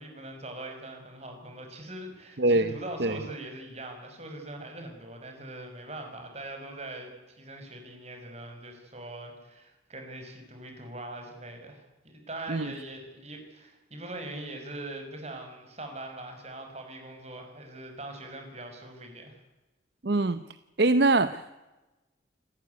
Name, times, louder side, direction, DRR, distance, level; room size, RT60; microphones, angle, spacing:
voice 1, 0.0-19.4, right 1 dB, 35° right, 4 dB, 5.7 m, -42 dB
voice 2, 2.4-2.7 3.0-3.2 12.5-12.7 20.0-20.4 20.8-21.6, right 2 dB, 60° right, 12 dB, 0.8 m, -23 dB
28.0 x 14.5 x 9.5 m, 1.1 s
head